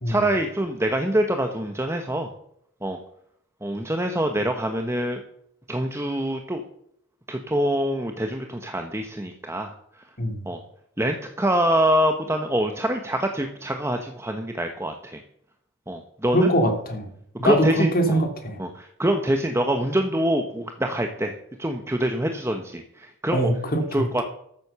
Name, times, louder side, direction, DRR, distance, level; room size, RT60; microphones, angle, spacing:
voice 1, 0.1-2.3 2.8-3.0 3.6-5.2 5.7-6.6 7.3-9.7 10.5-10.6 11.0-15.2 15.9-16.5 17.4-18.2 18.6-21.3 21.6-23.5 23.9-24.2, right 1 dB, 15° right, 5 dB, 1.0 m, -25 dB
voice 2, 16.3-17.1 17.4-18.6 23.3-24.1, equal, 45° left, 5 dB, 2.4 m, -22 dB
13.5 x 7.7 x 6.8 m, 0.70 s
head